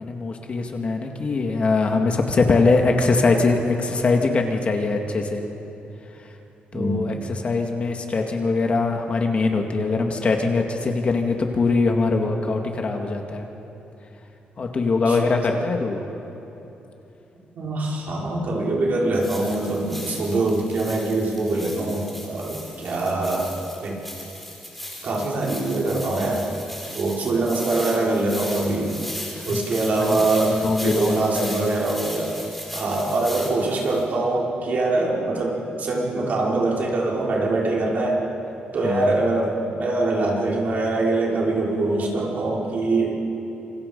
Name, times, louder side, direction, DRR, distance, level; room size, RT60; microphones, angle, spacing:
voice 1, 0.0-5.4 6.7-13.5 14.6-16.0 29.4-29.6 30.1-30.2 30.5-31.6 38.8-39.1, left 3 dB, 40° left, 3 dB, 2.1 m, -22 dB
voice 2, 6.7-7.1 15.1-15.2 15.5-15.6 17.5-23.5 23.8-24.0 25.0-26.5 26.9-28.9 29.5-32.3 32.7-38.2 38.7-43.1, right 2 dB, 55° right, -3 dB, 5.3 m, -23 dB
sound 1, 19.1-34.0, left 1 dB, 5° left, 3.9 m, -37 dB
27.5 x 25.0 x 5.5 m, 3.0 s
cardioid pair, 135°, 3 cm